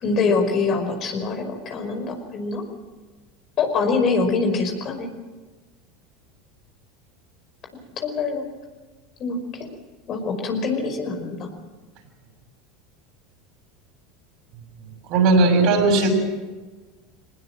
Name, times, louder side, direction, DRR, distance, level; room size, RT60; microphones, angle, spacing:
voice 1, 0.0-2.6 3.6-5.1 8.0-8.5 9.2-9.7 10.1-11.5, left 4 dB, 45° left, 5 dB, 5.3 m, -24 dB
voice 2, 15.1-16.1, right 3 dB, 55° right, 4 dB, 6.9 m, -17 dB
23.0 x 20.0 x 7.7 m, 1.3 s
hypercardioid pair, 80°, 0 cm